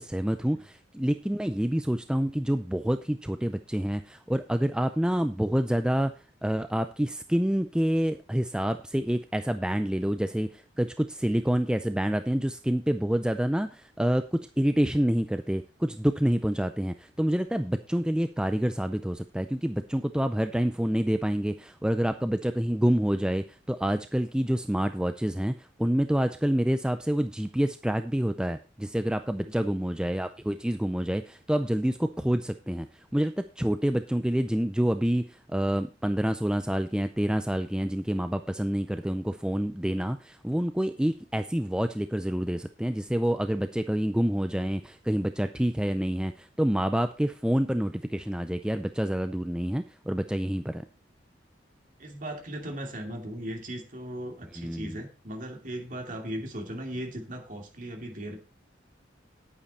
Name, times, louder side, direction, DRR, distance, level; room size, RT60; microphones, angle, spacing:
voice 1, 0.0-6.1 6.4-32.9 33.1-50.8 54.6-55.0, equal, 5° right, 9 dB, 0.4 m, -27 dB
voice 2, 29.4-29.7 52.0-58.4, right 1 dB, 45° right, 3 dB, 2.6 m, -37 dB
10.0 x 8.7 x 4.2 m, 0.32 s
head